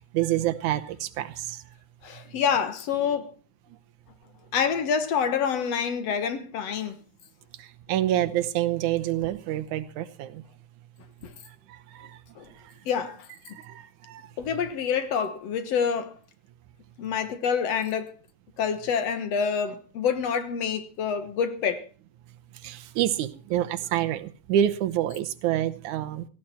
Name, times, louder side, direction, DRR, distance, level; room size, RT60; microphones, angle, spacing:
voice 1, 0.1-1.6 7.6-10.4 11.7-12.2 12.6-12.7 13.5-14.2 22.6-26.3, right 12 dB, 85° right, 2.4 m, -27 dB
voice 2, 2.0-3.3 4.5-7.0 11.2-11.3 12.4-12.5 12.9-13.3 14.4-16.1 17.0-18.1 18.6-21.9, left 7 dB, 60° left, 2.3 m, -27 dB
17.0 x 15.5 x 4.3 m
omnidirectional pair, 3.4 m